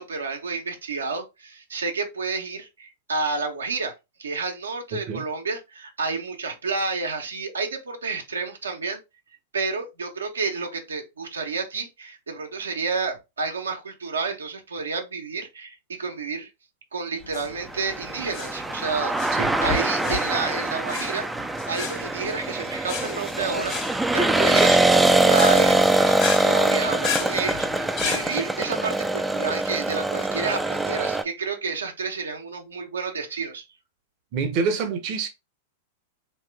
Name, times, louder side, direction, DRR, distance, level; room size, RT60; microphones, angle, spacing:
voice 1, 0.0-3.9 4.2-9.0 9.5-16.5 16.9-19.3 19.6-21.3 21.7-33.6, right 4 dB, 90° right, 1.0 m, -30 dB
voice 2, 4.9-5.2 19.3-19.5 34.3-35.3, right 5 dB, 50° right, 0.8 m, -26 dB
sound 1, 17.2-28.3, left 6 dB, 40° left, 1.4 m, -33 dB
sound 2, 17.8-31.2, right 2 dB, 5° right, 0.4 m, -23 dB
3.6 x 3.1 x 3.3 m
hypercardioid pair, 105°, 0 cm